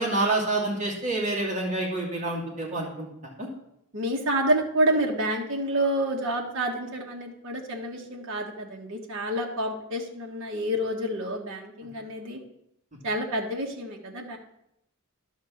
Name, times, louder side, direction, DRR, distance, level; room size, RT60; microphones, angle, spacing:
voice 1, 0.0-3.5, right 2 dB, 35° right, -4 dB, 2.5 m, -28 dB
voice 2, 3.9-12.4 13.0-14.4, right 1 dB, 60° right, 0 dB, 1.4 m, -28 dB
11.0 x 3.8 x 7.1 m, 0.80 s
head